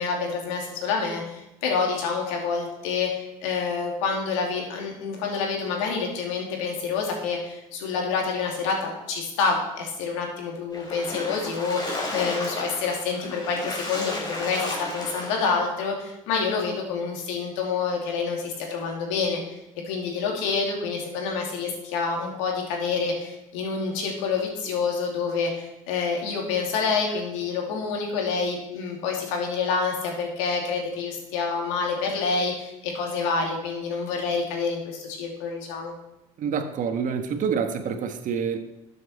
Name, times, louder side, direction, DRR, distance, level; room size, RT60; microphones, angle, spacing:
voice 1, 0.0-19.4 19.9-35.9, left 5 dB, 85° left, 0 dB, 2.7 m, -27 dB
Splash splatter, 10.7-15.6, left 2 dB, 25° left, 4.5 m, -33 dB
voice 2, 36.4-38.6, right 6 dB, 55° right, 6 dB, 1.5 m, -27 dB
13.0 x 7.6 x 4.3 m, 0.93 s
supercardioid pair, 75°, 16 cm